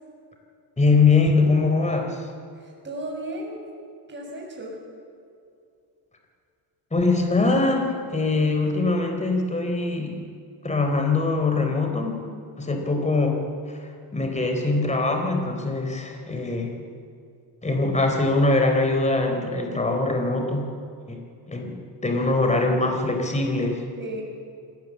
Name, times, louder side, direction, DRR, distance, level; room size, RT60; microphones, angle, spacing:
voice 1, 0.8-2.2 6.9-10.2 10.6-12.3 12.6-13.8 14.1-16.7 17.6-20.7 21.1-21.2 21.5-21.8 22.0-23.8, left 3 dB, 15° left, 3 dB, 3.8 m, -22 dB
voice 2, 2.5-3.6 4.1-4.8 24.0-24.2, right 1 dB, 25° right, -1 dB, 6.5 m, -34 dB
26.0 x 18.0 x 7.5 m, 2.4 s
cardioid pair, 120°, 43 cm